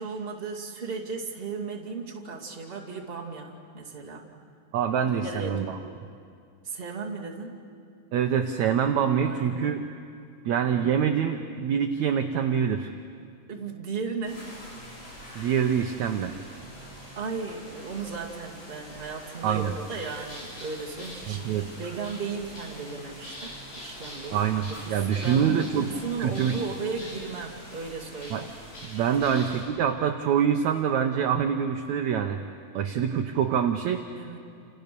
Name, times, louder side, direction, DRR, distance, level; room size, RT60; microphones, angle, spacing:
voice 1, 0.0-4.3 5.2-5.8 6.6-7.6 9.2-9.9 10.7-11.0 13.5-14.5 17.2-28.5 34.2-34.4, right 4 dB, 20° right, -1 dB, 2.1 m, -36 dB
voice 2, 4.7-5.8 8.1-9.8 10.5-12.9 15.4-16.3 19.4-19.7 21.3-21.7 24.3-25.9 26.2-26.6 28.3-28.5 28.8-32.4 32.8-34.0, right 8 dB, 70° right, 6 dB, 1.9 m, -25 dB
sound 1, 14.2-29.6, left 1 dB, 70° left, 9.2 m, -44 dB
29.5 x 28.5 x 6.9 m, 2.4 s
omnidirectional pair, 4.1 m